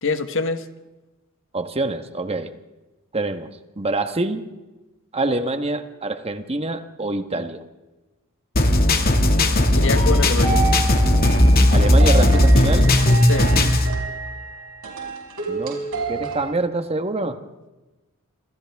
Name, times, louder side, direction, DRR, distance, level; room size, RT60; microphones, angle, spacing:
voice 1, 0.0-0.6 9.8-10.7 13.3-13.5, left 3 dB, 60° left, 9 dB, 1.4 m, -24 dB
voice 2, 1.5-2.5 3.1-4.5 5.1-7.6 11.7-12.9 15.5-15.8 16.1-17.4, right 2 dB, 30° right, 8 dB, 1.4 m, -25 dB
sound 1, 8.6-13.9, left 1 dB, 45° left, 2.1 m, -16 dB
sound 2, 8.9-16.5, right 5 dB, 65° right, 5.6 m, -30 dB
27.0 x 27.0 x 3.6 m, 1.1 s
head